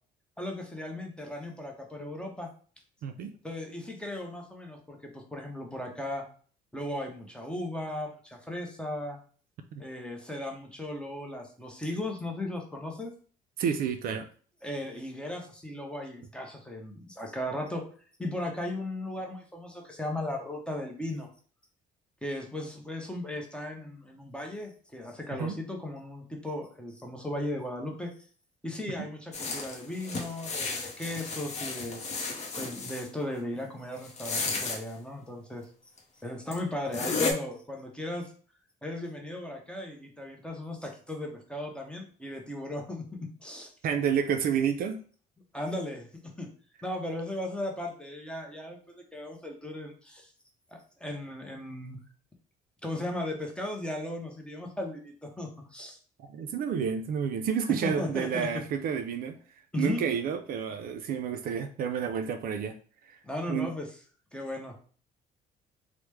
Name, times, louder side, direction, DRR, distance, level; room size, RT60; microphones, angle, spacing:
voice 1, 0.4-2.5 3.4-6.3 6.7-9.2 9.8-13.1 14.6-17.8 18.2-21.3 22.2-28.1 28.6-32.0 32.6-35.6 36.2-38.3 38.8-43.7 45.5-46.1 46.4-46.5 46.8-50.3 50.7-52.0 52.8-56.0 57.8-58.5 59.7-60.0 63.2-63.9 64.3-64.8, left 1 dB, 5° left, 2 dB, 0.7 m, -36 dB
voice 2, 3.0-3.3 9.7-9.8 13.6-14.3 25.4-25.5 43.8-45.0 56.3-59.4 59.8-62.7 63.1-63.2 63.5-63.7, right 7 dB, 60° right, 7 dB, 0.4 m, -30 dB
sound 1, 29.3-33.1 34.0-34.8 36.0-36.1 36.5-36.6 36.9-37.3, left 4 dB, 40° left, 0.7 m, -33 dB
3.0 x 2.1 x 3.2 m, 0.43 s
cardioid pair, 110°, 17 cm